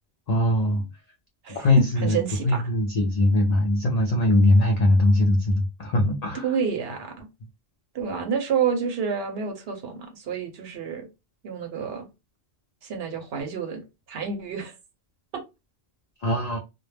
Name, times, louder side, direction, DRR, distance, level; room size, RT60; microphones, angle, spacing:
voice 1, 0.3-0.9 1.5-6.6 16.2-16.6, left 1 dB, 70° left, 0.3 m, -21 dB
voice 2, 2.0-2.6 6.4-7.3 7.9-11.1 11.4-12.1 12.8-14.7, right 6 dB, 65° right, 0.8 m, -29 dB
2.2 x 2.0 x 3.2 m
omnidirectional pair, 1.2 m